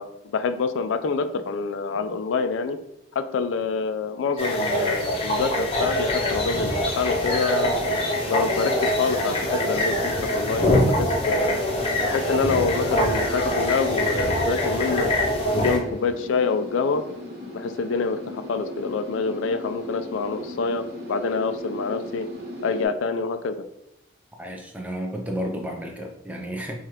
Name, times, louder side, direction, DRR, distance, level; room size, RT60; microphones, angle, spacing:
voice 1, 0.0-2.8 3.2-7.7 8.3-11.6 12.0-15.1 15.5-17.0 17.5-22.3 22.6-23.6, left 4 dB, 85° left, 10 dB, 0.4 m, -26 dB
sound 1, 4.4-15.8, left 1 dB, 30° left, 0.7 m, -24 dB
sound 2, 7.5-22.9, equal, 55° right, 1.1 m, -37 dB
voice 2, 24.4-26.8, equal, 10° right, 2 dB, 0.4 m, -32 dB
4.8 x 2.3 x 2.9 m, 0.82 s
head